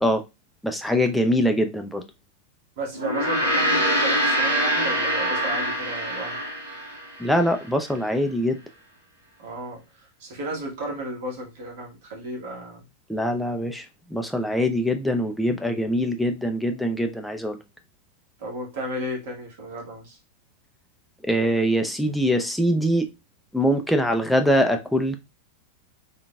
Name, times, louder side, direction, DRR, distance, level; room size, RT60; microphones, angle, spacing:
voice 1, 0.6-2.0 7.2-8.6 13.1-13.9 14.1-17.6 21.2-23.1 23.5-25.2, equal, ahead, 0.4 m, -23 dB
voice 2, 2.8-6.4 9.4-12.8 18.4-20.2, right 1 dB, 55° right, 1.7 m, -33 dB
Gong, 2.9-7.6, equal, 80° right, 1.2 m, -24 dB
3.7 x 3.5 x 2.2 m
figure-of-eight pair, 90°, 0 cm